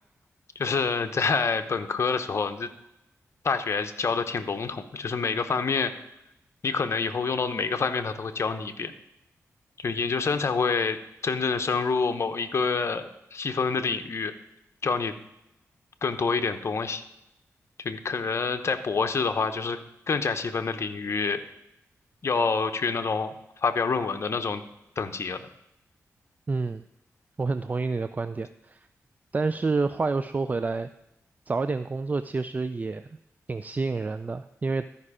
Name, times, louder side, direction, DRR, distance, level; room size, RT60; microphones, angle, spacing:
voice 1, 0.5-2.7 3.4-5.9 6.6-8.9 9.8-11.0 11.2-14.3 14.8-15.1 16.0-17.0 17.8-19.8 20.1-21.4 22.2-23.3 23.6-24.6 25.0-25.5, left 4 dB, 55° left, 8 dB, 0.9 m, -27 dB
voice 2, 26.5-26.8 27.4-28.9 29.3-30.9 31.5-33.1 33.5-34.8, right 3 dB, 30° right, 11 dB, 0.3 m, -28 dB
13.0 x 5.4 x 4.9 m, 0.86 s
cardioid pair, 80°, 6 cm